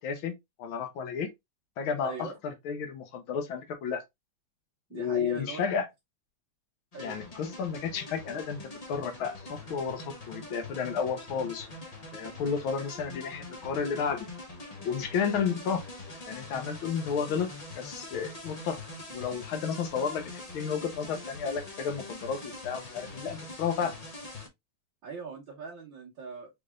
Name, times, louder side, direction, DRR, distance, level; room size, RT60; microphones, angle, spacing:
voice 1, 0.0-1.3 1.8-4.0 4.9-5.9 7.0-11.7 12.1-14.3 14.8-15.8 16.3-17.5 17.8-18.8 19.1-23.9, left 6 dB, 80° left, 1.7 m, -32 dB
voice 2, 2.0-2.4 4.9-5.7 6.9-7.2 25.0-26.5, right 5 dB, 65° right, 2.4 m, -41 dB
sound 1, 6.9-24.5, left 2 dB, 55° left, 0.4 m, -44 dB
5.3 x 3.4 x 2.3 m
omnidirectional pair, 2.2 m